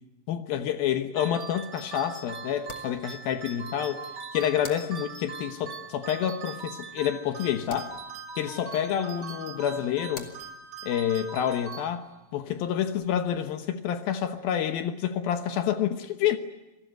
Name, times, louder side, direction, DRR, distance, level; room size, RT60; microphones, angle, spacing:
voice 1, 0.3-4.0 4.3-8.0 8.4-10.3 10.8-12.1 12.3-16.4, left 10 dB, 90° left, 8 dB, 2.0 m, -28 dB
sound 1, 0.5-13.4, left 5 dB, 45° left, 2.4 m, -51 dB
sound 2, 1.2-12.4, right 5 dB, 35° right, 1.9 m, -41 dB
27.5 x 19.5 x 9.2 m, 1.1 s
omnidirectional pair, 5.9 m